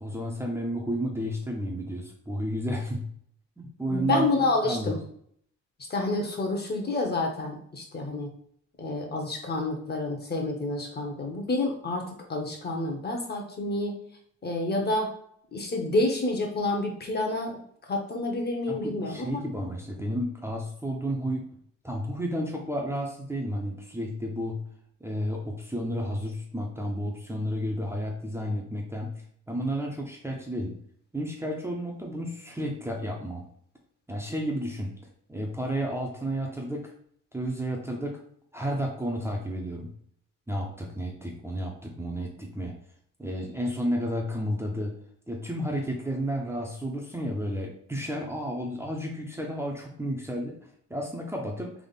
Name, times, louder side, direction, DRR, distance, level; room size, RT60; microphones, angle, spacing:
voice 1, 0.0-3.1 3.6-4.3 4.6-5.0 18.7-21.4 21.8-24.6 25.0-29.1 29.5-30.8 31.1-33.4 34.1-34.9 35.3-36.9 37.3-38.2 38.5-39.9 40.5-42.7 43.2-44.9 45.3-51.7, equal, 10° right, -1 dB, 0.8 m, -32 dB
voice 2, 3.9-5.0 5.9-8.3 8.8-12.0 12.3-14.0 14.4-15.1 15.5-17.5 17.9-19.4, left 2 dB, 35° left, 2 dB, 1.1 m, -28 dB
3.6 x 2.5 x 4.1 m, 0.63 s
cardioid pair, 90°, 30 cm